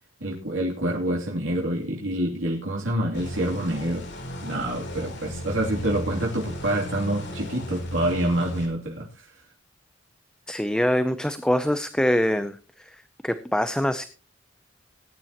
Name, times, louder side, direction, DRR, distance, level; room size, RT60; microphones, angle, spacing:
voice 1, 0.2-9.3, right 1 dB, 85° right, -3 dB, 2.8 m, -27 dB
sound 1, 3.1-8.7, equal, 60° left, 3.5 m, -35 dB
voice 2, 10.5-13.0 13.2-14.0, equal, 5° left, 11 dB, 0.5 m, -24 dB
19.5 x 9.9 x 2.9 m, 0.37 s
head